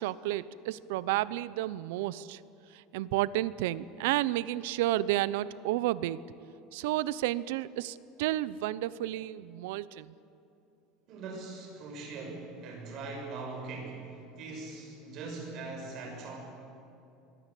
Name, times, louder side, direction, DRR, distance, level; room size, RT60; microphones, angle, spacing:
voice 1, 0.0-2.4 2.7-6.2 6.7-10.1, right 15 dB, 75° right, 18 dB, 0.7 m, -31 dB
voice 2, 11.1-16.4, right 3 dB, 35° right, 0 dB, 6.2 m, -41 dB
26.0 x 20.5 x 8.4 m, 2.8 s
cardioid pair, 180°, 0 cm